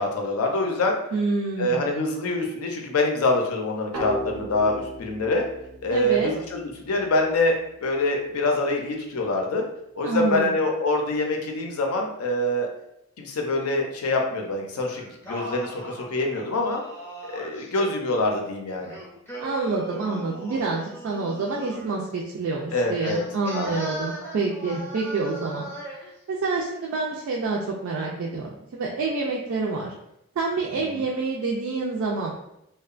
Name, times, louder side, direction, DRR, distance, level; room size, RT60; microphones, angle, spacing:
voice 1, 0.0-1.0 1.6-5.4 5.8-9.6 10.0-12.7 13.2-16.8 17.3-19.0 22.7-23.2 23.5-23.8 30.9-31.0, left 2 dB, 80° left, 2 dB, 0.5 m, -25 dB
voice 2, 1.1-1.9 5.9-6.3 10.0-10.5 19.4-25.7 26.3-29.9 30.4-32.3, right 3 dB, 60° right, -2 dB, 0.3 m, -27 dB
sound 1, 3.9-7.4, equal, 85° right, 0.7 m, -36 dB
Singing, 14.9-17.7 18.8-22.0 23.0-26.1, right 1 dB, 10° left, 0.5 m, -38 dB
2.8 x 2.1 x 2.4 m, 0.81 s
head